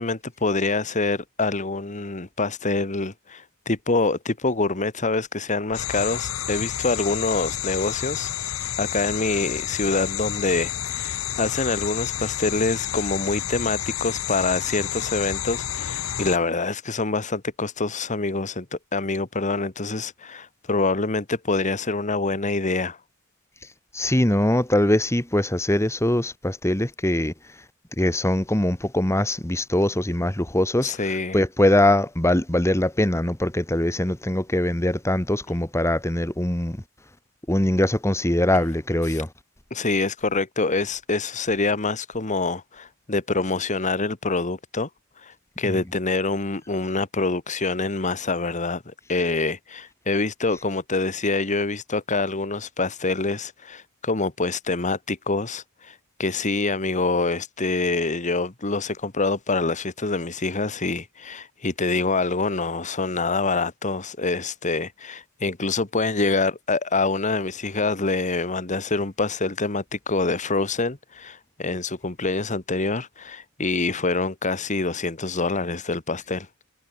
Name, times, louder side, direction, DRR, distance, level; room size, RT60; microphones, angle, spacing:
voice 1, 0.0-23.0 30.8-31.4 39.1-39.2 39.7-44.9 45.2-76.5, left 3 dB, 35° left, 1.6 m, -26 dB
sound 1, 5.7-16.4, left 11 dB, 70° left, 0.8 m, -30 dB
voice 2, 23.9-27.3 28.0-30.9 31.3-36.8 37.5-39.3, left 1 dB, 15° left, 1.7 m, -22 dB
head